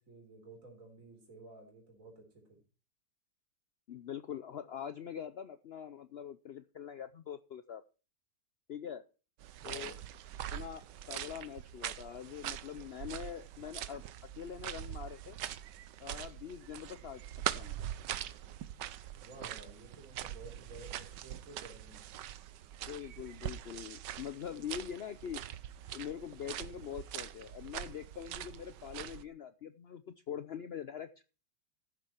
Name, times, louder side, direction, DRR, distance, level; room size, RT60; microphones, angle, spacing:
voice 1, 0.0-2.6 9.6-10.0 19.2-22.1, right 2 dB, 50° right, 0 dB, 4.3 m, -53 dB
voice 2, 3.9-7.8 8.7-9.0 9.6-9.9 10.5-14.0 14.4-15.4 16.0-17.2 17.5-17.8 22.9-25.4 25.9-31.2, left 8 dB, 75° left, 12 dB, 0.5 m, -43 dB
sound 1, 9.4-29.2, right 11 dB, 85° right, 1.4 m, -43 dB
14.0 x 7.7 x 4.4 m, 0.34 s
omnidirectional pair, 1.9 m